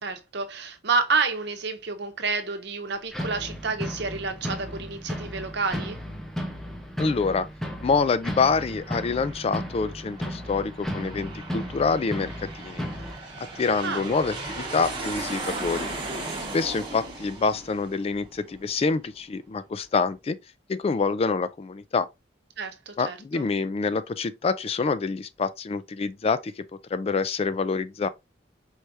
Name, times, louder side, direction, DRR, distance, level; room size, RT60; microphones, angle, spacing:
voice 1, 0.0-6.0 13.8-14.0 22.6-23.4, right 4 dB, 65° right, 0.9 m, -29 dB
sound 1, 3.1-13.2, equal, ahead, 0.9 m, -35 dB
voice 2, 7.0-7.5 7.8-12.8 13.6-15.9 16.5-20.4 20.7-22.1 23.0-26.6 26.9-28.1, left 4 dB, 35° left, 0.3 m, -26 dB
Aircraft, 8.2-19.2, right 2 dB, 25° right, 1.4 m, -38 dB
4.7 x 3.3 x 2.6 m
head